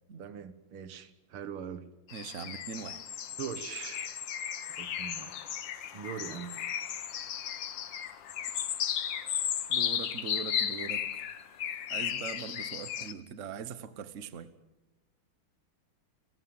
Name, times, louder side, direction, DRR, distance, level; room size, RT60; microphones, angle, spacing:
voice 1, 0.2-1.9 3.4-4.2 4.8-5.5 5.9-6.5, right 8 dB, 80° right, 2.1 m, -41 dB
sound 1, 2.1-13.1, left 9 dB, 65° left, 1.7 m, -35 dB
voice 2, 2.1-3.0 9.7-11.1 11.9-14.5, right 7 dB, 45° right, 1.2 m, -41 dB
30.0 x 16.0 x 7.7 m
omnidirectional pair, 2.3 m